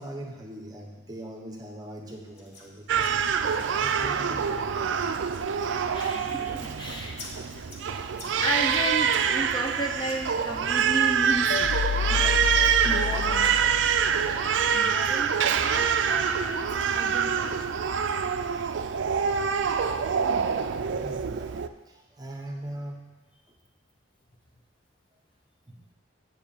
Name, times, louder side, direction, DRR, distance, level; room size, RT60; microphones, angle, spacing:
voice 1, 0.0-3.1 3.7-4.9 21.0-21.6 21.9-23.0 25.1-25.2 25.7-25.8, right 1 dB, 20° right, 1 dB, 1.0 m, -42 dB
sound 1, 2.0-10.6, left 2 dB, 55° left, 1.3 m, -51 dB
Crying sobbing, 2.9-21.7, right 7 dB, 65° right, 0.4 m, -26 dB
voice 2, 5.7-7.2 7.5-8.0 8.4-11.5 12.1-12.4 12.8-13.5 14.7-15.3 15.6-17.5, equal, 25° left, 1 dB, 0.7 m, -33 dB
sound 2, 11.5-14.7, left 7 dB, 75° left, 0.3 m, -30 dB
8.0 x 4.8 x 7.1 m, 1.3 s
head